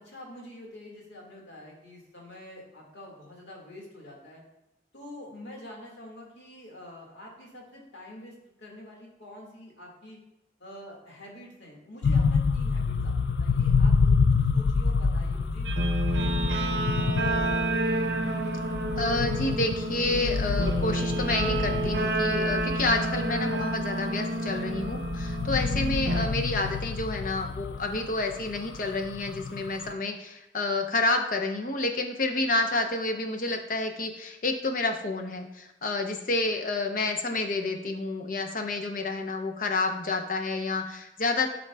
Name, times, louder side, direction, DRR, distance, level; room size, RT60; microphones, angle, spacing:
voice 1, 0.0-4.4 4.9-10.2 10.6-15.7 16.1-17.5, left 1 dB, 90° left, -2 dB, 1.8 m, -47 dB
sound 1, 12.0-29.9, left 4 dB, 75° left, 0.3 m, -28 dB
Guitar, 15.6-26.3, right 1 dB, 80° right, 0.6 m, -29 dB
voice 2, 19.0-41.5, left 2 dB, 50° left, 4 dB, 0.7 m, -29 dB
10.5 x 3.9 x 2.3 m, 0.91 s
head